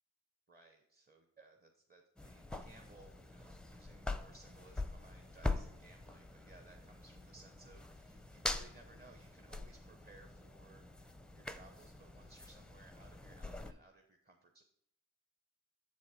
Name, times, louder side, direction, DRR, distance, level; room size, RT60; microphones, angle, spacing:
voice 1, 0.5-14.6, right 2 dB, 25° right, 4 dB, 0.9 m, -62 dB
sound 1, 2.2-13.7, left 2 dB, ahead, 0.5 m, -44 dB
7.2 x 4.0 x 5.1 m, 0.71 s
supercardioid pair, 45°, 35 cm